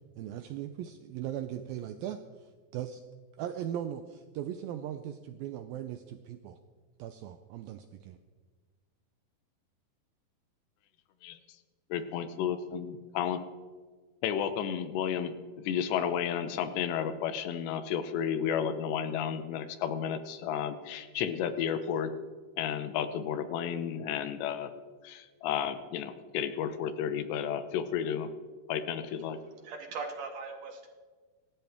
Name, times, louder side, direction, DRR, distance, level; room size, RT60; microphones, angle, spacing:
voice 1, 0.2-3.0 3.4-6.6 7.0-8.2, right 10 dB, 80° right, 8 dB, 2.1 m, -39 dB
voice 2, 11.9-13.4 14.2-15.3 15.6-22.1 22.6-24.7 25.0-28.3 28.7-29.4, left 8 dB, 90° left, 10 dB, 3.2 m, -32 dB
voice 3, 29.2-30.9, right 4 dB, 65° right, 4 dB, 2.3 m, -41 dB
26.5 x 13.5 x 3.6 m, 1.5 s
omnidirectional pair, 4.8 m